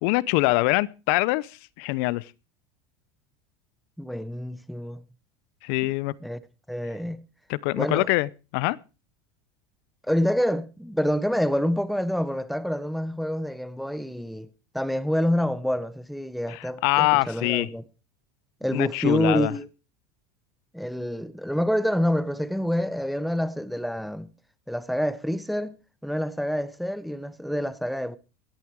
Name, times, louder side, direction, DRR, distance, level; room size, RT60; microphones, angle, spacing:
voice 1, 0.0-1.5 1.8-2.2 5.6-6.1 7.5-8.8 16.5-17.7 18.7-19.5, left 22 dB, 65° left, 0.7 m, -24 dB
voice 2, 4.0-5.0 5.8-5.9 6.2-6.4 6.7-7.2 7.8-8.1 10.1-14.5 14.7-17.8 18.6-19.7 20.7-24.3 24.7-25.8 26.0-28.2, equal, ahead, 1.0 m, -27 dB
17.0 x 10.5 x 4.7 m
supercardioid pair, 115°, 13 cm